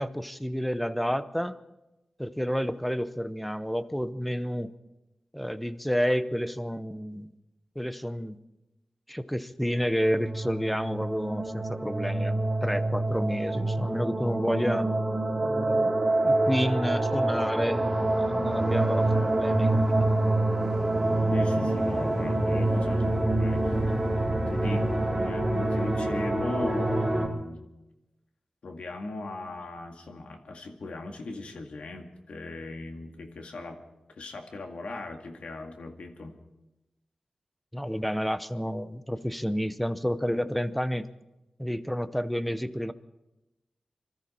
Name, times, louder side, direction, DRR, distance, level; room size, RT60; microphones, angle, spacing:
voice 1, 0.0-1.6 2.2-4.7 5.3-7.3 7.8-8.4 9.1-14.9 15.4-16.0 16.2-20.1 37.7-41.1 41.6-42.9, equal, 5° left, 13 dB, 0.7 m, -30 dB
sound 1, 9.7-27.3, right 2 dB, 15° right, 3.6 m, -26 dB
voice 2, 21.3-23.8 24.5-27.7 28.6-33.8 34.2-36.4, left 2 dB, 80° left, 4 dB, 2.0 m, -38 dB
25.0 x 13.5 x 4.3 m, 0.99 s
wide cardioid pair, 105°, 2 cm